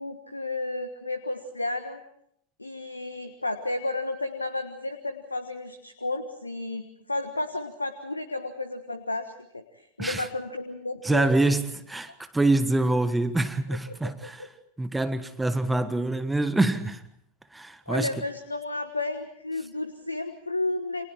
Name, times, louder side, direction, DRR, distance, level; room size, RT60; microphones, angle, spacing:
voice 1, 0.0-2.0 2.6-11.3 14.0-14.5 17.9-21.1, left 2 dB, 90° left, 1.4 m, -32 dB
voice 2, 11.0-14.5 14.8-17.0 17.5-18.1, right 2 dB, 10° right, 1.4 m, -25 dB
29.5 x 27.0 x 4.5 m
figure-of-eight pair, 90°, 0 cm